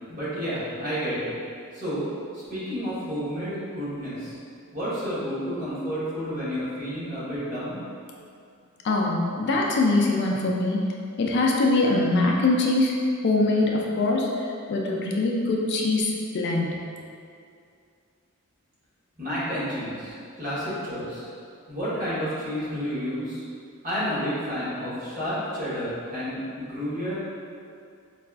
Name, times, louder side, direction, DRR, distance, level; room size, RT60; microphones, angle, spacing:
voice 1, 0.1-1.3 1.7-2.1 2.3-4.4 4.7-7.8 19.2-21.3 21.7-23.4 23.8-27.2, equal, 40° right, -11 dB, 1.2 m, -30 dB
voice 2, 8.8-10.9 11.2-12.9 13.2-16.8, left 2 dB, 50° left, -1 dB, 0.3 m, -23 dB
4.6 x 2.4 x 2.3 m, 2.4 s
head